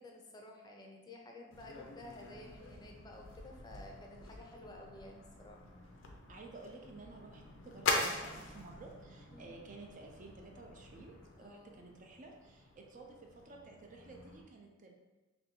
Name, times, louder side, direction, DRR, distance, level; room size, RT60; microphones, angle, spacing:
voice 1, 0.0-5.6 9.3-9.6 11.4-11.9, left 1 dB, 20° left, 1 dB, 0.5 m, -53 dB
sound 1, 1.5-14.4, left 3 dB, 75° left, 0.5 m, -43 dB
voice 2, 6.3-15.0, right 3 dB, 40° right, 1 dB, 0.4 m, -53 dB
3.0 x 2.6 x 4.3 m, 1.2 s
head